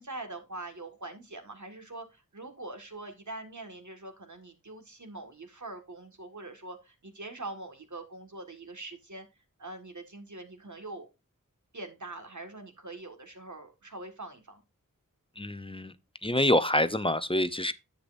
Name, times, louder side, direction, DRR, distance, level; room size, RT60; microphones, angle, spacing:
voice 1, 0.0-9.3 9.6-11.1 11.7-14.6, right 2 dB, 60° right, 1.9 m, -43 dB
voice 2, 15.4-15.9 16.2-17.7, left 1 dB, 15° left, 0.7 m, -26 dB
10.0 x 7.9 x 2.6 m
wide cardioid pair, 50°, 33 cm